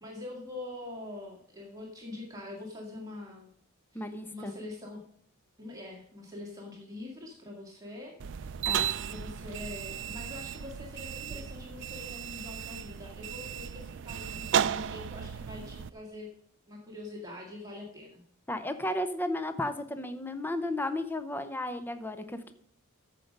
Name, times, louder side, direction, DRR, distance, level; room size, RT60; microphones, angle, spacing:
voice 1, 0.0-3.5 3.9-5.0 5.6-16.3 16.7-18.2, left 2 dB, 15° right, -2 dB, 1.8 m, -44 dB
voice 2, 3.9-4.5 8.7-8.9 18.5-22.5, left 1 dB, 10° left, 9 dB, 0.6 m, -34 dB
sound 1, 8.2-15.9, right 8 dB, 55° right, 0.4 m, -34 dB
14.0 x 5.2 x 5.2 m, 0.64 s
head